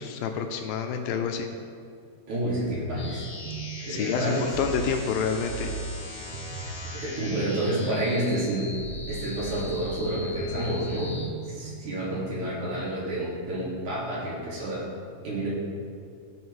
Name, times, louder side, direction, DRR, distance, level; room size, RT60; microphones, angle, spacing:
voice 1, 0.0-1.5 3.9-5.7, left 6 dB, 80° left, 5 dB, 2.2 m, -28 dB
voice 2, 2.3-3.3 3.8-4.5 6.5-8.7 9.1-11.2 11.4-14.9 15.2-15.5, right 1 dB, 55° right, -6 dB, 3.5 m, -29 dB
sound 1, 2.5-12.3, right 4 dB, 85° right, 2.6 m, -39 dB
sound 2, 3.0-11.3, left 2 dB, 55° left, 3.7 m, -41 dB
17.5 x 6.4 x 3.1 m, 2.3 s
omnidirectional pair, 4.3 m